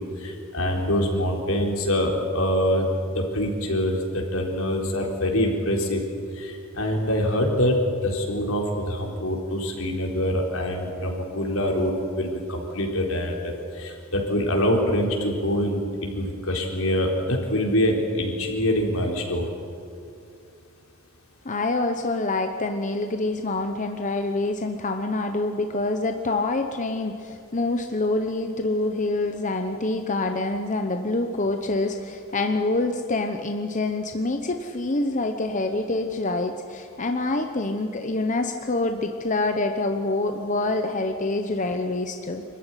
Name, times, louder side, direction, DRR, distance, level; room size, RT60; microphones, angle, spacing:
voice 1, 0.0-6.0 6.3-7.8 8.0-19.5, equal, 80° left, 1 dB, 4.0 m, -25 dB
voice 2, 21.4-42.4, left 2 dB, 35° left, 5 dB, 1.0 m, -26 dB
25.5 x 14.5 x 9.9 m, 2.4 s
head